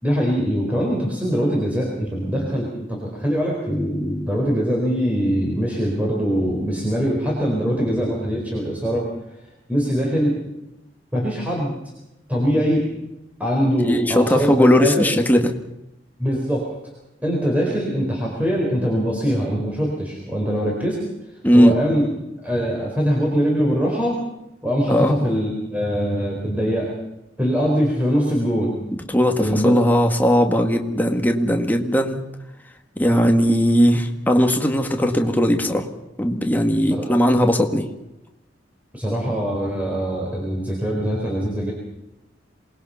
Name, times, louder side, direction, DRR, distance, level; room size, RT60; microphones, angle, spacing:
voice 1, 0.0-9.1 9.7-10.4 11.1-11.7 12.3-12.9 13.4-15.1 16.2-16.6 17.2-21.0 21.5-22.1 22.4-24.2 24.6-26.9 27.4-28.7 29.4-29.7 36.9-37.1 38.9-41.7, equal, 10° right, -3 dB, 4.4 m, -22 dB
voice 2, 13.8-15.5 21.4-21.7 24.9-25.1 29.1-32.2 33.0-35.9 36.2-37.9, equal, 10° left, 3 dB, 1.9 m, -18 dB
27.0 x 20.0 x 5.7 m, 0.92 s
head